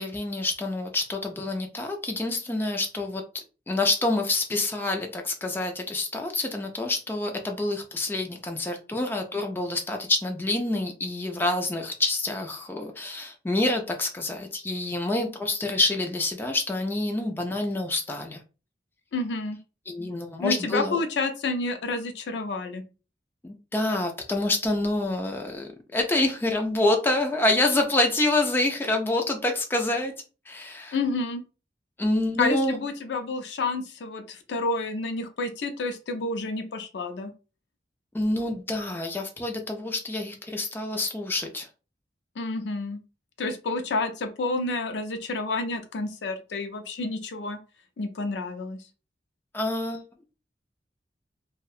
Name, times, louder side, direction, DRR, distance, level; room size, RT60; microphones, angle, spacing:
voice 1, 0.0-3.2 3.7-18.4 19.9-21.0 23.4-30.1 30.5-31.0 32.0-32.8 38.1-41.7 49.5-50.0, left 2 dB, 10° left, 3 dB, 0.3 m, -27 dB
voice 2, 19.1-19.6 20.4-22.8 30.9-31.4 32.4-37.3 42.4-43.0 43.4-47.6 48.0-48.9, left 3 dB, 75° left, 7 dB, 0.4 m, -29 dB
2.6 x 2.1 x 2.3 m, 0.33 s
head